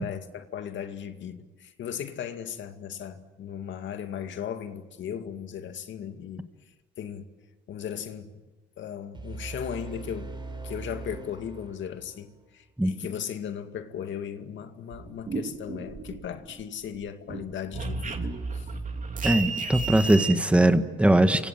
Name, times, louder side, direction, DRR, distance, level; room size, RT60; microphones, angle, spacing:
voice 1, 0.0-6.5 7.0-7.3 7.7-8.3 8.8-18.7, left 8 dB, 70° left, 2.2 m, -37 dB
sound 1, 9.1-12.2, right 3 dB, 25° right, 5.5 m, -40 dB
sound 2, 14.9-16.6 16.9-20.3, right 4 dB, 40° right, 3.0 m, -33 dB
voice 2, 19.2-21.5, right 1 dB, 5° right, 1.7 m, -21 dB
29.0 x 25.5 x 7.6 m
cardioid pair, 90°, 20 cm